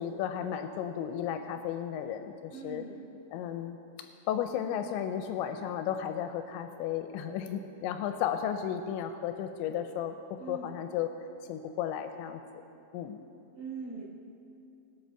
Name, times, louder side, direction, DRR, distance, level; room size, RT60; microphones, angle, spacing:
voice 1, 0.0-2.8 3.3-3.8 4.3-11.1 11.5-12.4 12.9-13.2, left 9 dB, 85° left, 7 dB, 2.8 m, -34 dB
voice 2, 2.5-2.9 10.4-10.7 13.5-14.0, right 4 dB, 30° right, -8 dB, 3.3 m, -41 dB
21.0 x 7.6 x 4.5 m, 2.7 s
omnidirectional pair, 5.3 m